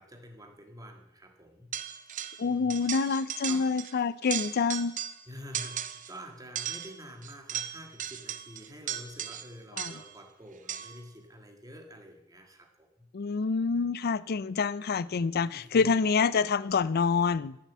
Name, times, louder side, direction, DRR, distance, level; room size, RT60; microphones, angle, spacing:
voice 1, 0.0-1.8 2.4-2.9 3.5-4.1 5.3-13.1 15.4-15.9, equal, 20° right, 3 dB, 1.7 m, -48 dB
sound 1, 1.7-2.4 2.7-3.9 4.2-5.2 5.5-6.1 6.6-10.2 10.7-11.1, right 9 dB, 40° right, 0.6 m, -37 dB
voice 2, 2.4-4.9 9.8-9.9 13.1-17.6, left 5 dB, 50° left, 18 dB, 0.4 m, -27 dB
13.0 x 7.0 x 7.3 m, 0.87 s
head